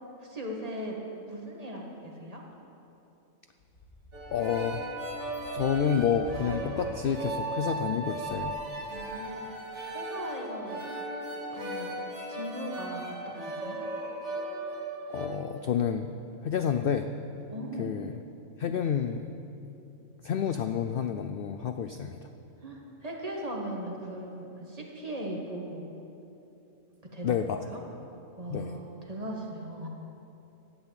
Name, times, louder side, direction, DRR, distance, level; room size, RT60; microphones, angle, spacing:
voice 1, 0.2-1.0 1.3-2.4 8.9-9.5 9.9-10.8 11.5-12.0 12.3-13.8 17.5-17.9 22.6-25.9 27.0-27.4 27.7-27.8 28.4-29.9, right 1 dB, 25° right, -1 dB, 1.7 m, -38 dB
sound 1, 3.6-6.8 8.1-8.5, left 1 dB, 50° left, 2.8 m, -48 dB
sound 2, 4.1-15.3, right 1 dB, 55° right, 2.5 m, -36 dB
voice 2, 4.3-4.8 5.5-8.6 15.1-16.1 16.4-17.1 17.8-18.1 18.6-19.3 20.2-22.3 27.2-27.6 28.5-28.8, left 8 dB, 70° left, 8 dB, 0.5 m, -29 dB
12.0 x 8.0 x 8.8 m, 2.9 s
omnidirectional pair, 1.5 m